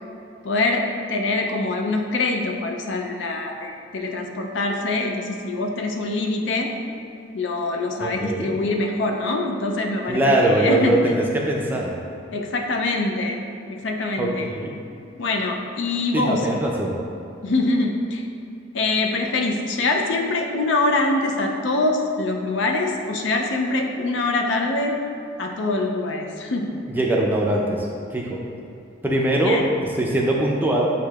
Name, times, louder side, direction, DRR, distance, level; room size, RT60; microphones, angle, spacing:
voice 1, 0.4-6.7 7.3-11.1 12.3-13.4 13.7-14.5 15.2-16.5 17.4-18.3 18.7-25.0 25.4-26.8 29.4-29.7, left 2 dB, 75° left, 2 dB, 0.5 m, -24 dB
voice 2, 8.0-8.5 10.1-11.9 14.2-14.3 14.6-14.7 16.1-17.0 26.9-28.4 29.0-29.6 30.0-30.9, right 1 dB, 10° right, -2 dB, 0.4 m, -21 dB
8.2 x 2.7 x 2.3 m, 2.6 s
head